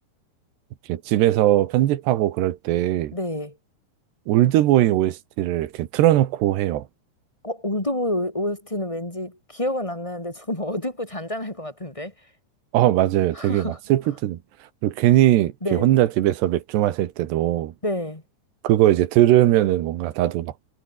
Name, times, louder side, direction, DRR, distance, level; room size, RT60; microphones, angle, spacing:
voice 1, 0.9-3.1 4.3-6.9 12.7-14.4 14.8-17.7 18.6-20.5, right 14 dB, 85° right, 3.5 m, -20 dB
voice 2, 3.1-3.6 7.4-12.1 13.3-13.8 15.6-15.9 17.8-18.2, left 1 dB, 10° left, 1.8 m, -28 dB
omnidirectional pair, 4.8 m